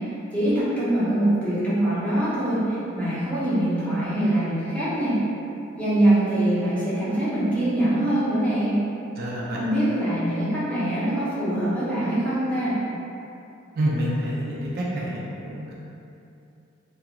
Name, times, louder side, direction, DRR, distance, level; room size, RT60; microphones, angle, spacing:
voice 1, 0.0-5.2 5.8-8.8 9.5-12.8, right 1 dB, 5° left, -11 dB, 0.7 m, -23 dB
voice 2, 9.2-9.6 13.8-15.7, equal, 50° right, -5 dB, 0.3 m, -27 dB
2.4 x 2.3 x 2.9 m, 2.8 s
head